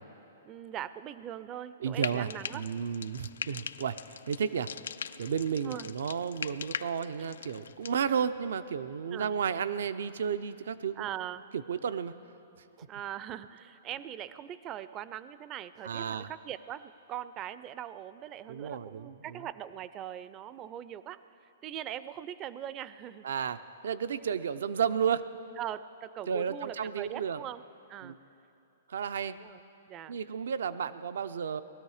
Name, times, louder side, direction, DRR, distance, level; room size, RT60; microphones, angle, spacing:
voice 1, 0.4-2.6 5.6-5.9 7.2-7.3 9.1-9.3 11.0-11.4 12.8-23.3 24.2-24.4 25.6-27.6 27.9-28.2 29.3-29.6 29.9-30.2, right 11 dB, 30° right, 15 dB, 0.4 m, -41 dB
voice 2, 1.8-3.9 4.3-4.7 5.2-11.1 11.5-12.2 15.8-16.3 18.5-19.4 23.2-23.6 23.8-25.2 26.3-27.4 28.0-28.2 28.9-29.3 30.1-31.6, right 7 dB, 75° right, 13 dB, 0.5 m, -32 dB
Frying (food), 1.9-8.0, left 7 dB, 85° left, 0.3 m, -41 dB
18.5 x 13.0 x 4.9 m, 2.9 s
hypercardioid pair, 140°, 0 cm